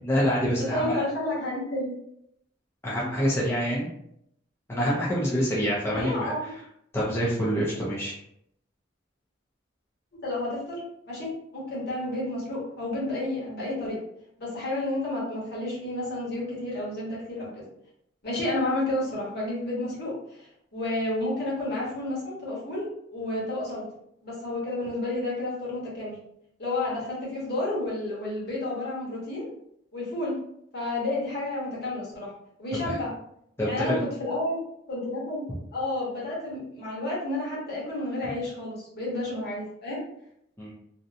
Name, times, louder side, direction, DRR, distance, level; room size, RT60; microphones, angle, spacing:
voice 1, 0.0-0.9 2.8-3.9 4.7-6.3 6.9-8.1 32.8-33.0 33.6-34.0 40.6-40.7, equal, 15° left, -7 dB, 0.5 m, -26 dB
voice 2, 0.6-1.9 5.9-6.5 10.2-14.0 14.4-17.6 18.2-22.8 23.1-23.8 24.2-26.2 26.6-29.5 29.9-30.3 30.7-32.3 32.6-33.1 33.6-34.6 34.9-40.0, left 2 dB, 55° left, -6 dB, 1.1 m, -31 dB
2.7 x 2.2 x 2.5 m, 0.74 s
head